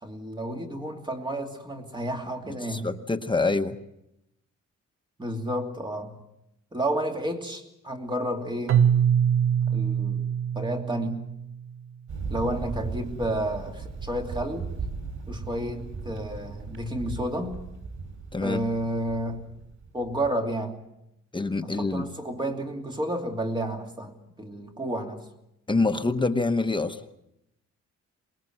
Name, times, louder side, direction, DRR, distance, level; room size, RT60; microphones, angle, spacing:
voice 1, 0.0-2.9 5.2-6.2 6.7-8.9 9.7-10.3 10.5-11.3 12.3-14.7 15.3-17.5 18.4-19.5 19.9-20.8 21.6-25.3, right 1 dB, 15° right, 3 dB, 2.7 m, -31 dB
voice 2, 2.5-3.8 18.3-18.7 21.3-22.1 25.7-27.0, left 3 dB, 15° left, 6 dB, 1.0 m, -26 dB
Keyboard (musical), 8.7-11.6, right 8 dB, 45° right, 0.8 m, -24 dB
Thunder, 12.1-20.3, right 4 dB, 85° right, 4.8 m, -37 dB
25.0 x 20.5 x 7.8 m, 0.84 s
wide cardioid pair, 155°, 30 cm